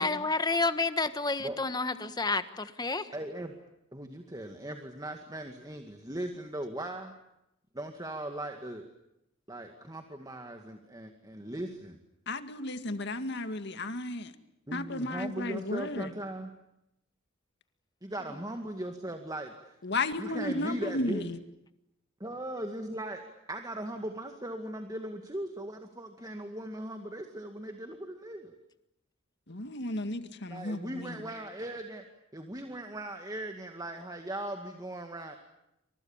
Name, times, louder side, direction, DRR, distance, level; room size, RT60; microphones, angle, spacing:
voice 1, 0.0-3.1, left 3 dB, 20° left, 11 dB, 1.5 m, -30 dB
voice 2, 3.1-3.5 3.9-7.1 7.7-8.9 9.5-12.0 14.7-16.5 18.0-19.8 20.2-21.2 22.2-28.5 30.5-32.0 32.3-35.4, right 1 dB, 20° right, 5 dB, 2.1 m, -39 dB
voice 3, 12.3-14.3 14.7-16.1 19.8-21.4 29.5-31.1, left 2 dB, 55° left, 9 dB, 2.1 m, -34 dB
28.5 x 26.5 x 7.3 m, 0.85 s
head